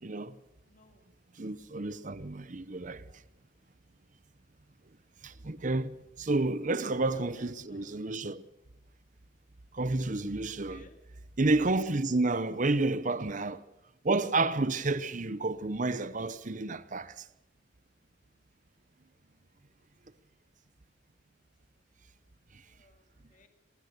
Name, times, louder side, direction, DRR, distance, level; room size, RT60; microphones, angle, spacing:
voice 1, 0.0-0.4 1.4-3.1 5.2-8.4 9.7-10.8 11.4-13.6 14.0-17.2, right 2 dB, 40° right, 0.8 m, -30 dB
voice 2, 0.7-1.0 1.9-2.6 6.3-6.6 7.0-8.0 10.5-11.0 22.7-23.5, left 3 dB, 40° left, 2.1 m, -61 dB
24.0 x 19.5 x 6.7 m
head